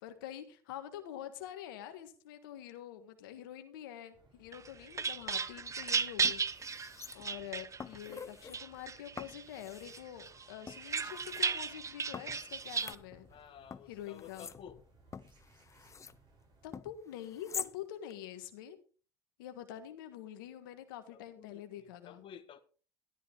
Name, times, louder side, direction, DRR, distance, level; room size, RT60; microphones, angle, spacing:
voice 1, 0.0-6.4 6.7-13.3 13.9-14.5 16.6-18.8 19.4-22.2, left 11 dB, 85° left, 8 dB, 1.5 m, -46 dB
sound 1, 4.1-16.7, right 3 dB, 45° right, 7.5 m, -64 dB
sound 2, 4.5-8.1 8.5-9.4 9.8-12.9, right 5 dB, 30° right, 0.9 m, -35 dB
sound 3, 5.7-5.8 6.2-7.5 7.8-8.6 9.2-10.1 10.7-11.4 12.1-13.4 13.7-16.2 16.7-17.8 18.1-18.2, left 6 dB, 25° left, 0.6 m, -47 dB
voice 2, 13.3-14.8 21.1-22.6, left 8 dB, 50° left, 10 dB, 1.5 m, -53 dB
12.5 x 12.0 x 3.7 m, 0.38 s
hypercardioid pair, 80°, 11 cm